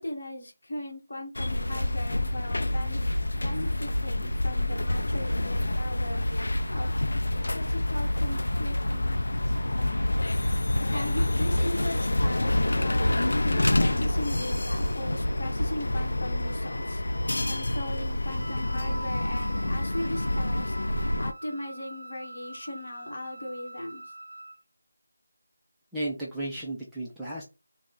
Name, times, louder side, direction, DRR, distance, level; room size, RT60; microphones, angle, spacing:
voice 1, 0.0-3.0 3.3-6.9 7.5-9.2 9.8-10.0 10.9-13.2 13.4-17.0 17.5-20.7 21.2-24.1, left 1 dB, 45° left, 2 dB, 1.1 m, -38 dB
sound 1, 1.3-21.3, left 1 dB, 90° left, 0.3 m, -27 dB
Wind instrument woodwind instrument, 18.4-24.6, right 1 dB, 90° right, 0.4 m, -45 dB
voice 2, 25.9-27.4, right 1 dB, 5° right, -8 dB, 0.3 m, -34 dB
3.5 x 2.0 x 3.7 m, 0.28 s
figure-of-eight pair, 180°, 0 cm